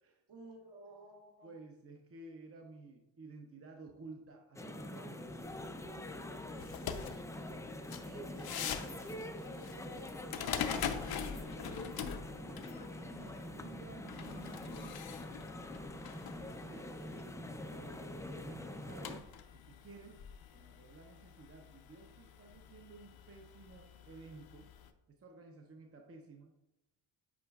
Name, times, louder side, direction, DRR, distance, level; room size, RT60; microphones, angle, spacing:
voice 1, 0.3-1.5 5.1-6.3 7.0-7.3 7.7-10.9 17.7-18.4, right 2 dB, 65° right, 0 dB, 2.0 m, -56 dB
voice 2, 1.4-5.3 8.1-8.3 11.0-15.5 16.4-20.2 20.5-24.7 25.1-26.5, right 3 dB, 30° right, 2 dB, 0.7 m, -54 dB
sound 1, 4.6-19.2, left 1 dB, 5° left, 0.4 m, -45 dB
sound 2, 5.3-24.9, left 7 dB, 55° left, 0.7 m, -45 dB
8.5 x 5.0 x 2.3 m, 0.93 s
cardioid pair, 95°, 44 cm